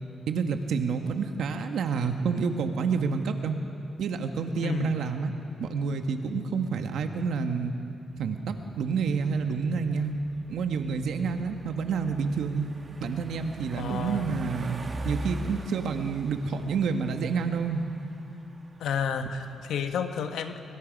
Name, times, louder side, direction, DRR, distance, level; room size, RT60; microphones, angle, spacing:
voice 1, 0.3-3.6 4.0-5.3 5.6-7.7 8.2-10.1 10.5-12.7 13.0-14.8 15.0-17.8, right 5 dB, 85° right, 6 dB, 1.5 m, -28 dB
voice 2, 4.6-5.0 13.7-14.3 18.8-20.6, left 7 dB, 90° left, 7 dB, 1.4 m, -31 dB
sound 1, 8.4-19.9, right 1 dB, 30° right, 1.7 m, -43 dB
24.0 x 23.5 x 5.4 m, 2.7 s
cardioid pair, 120°, 0 cm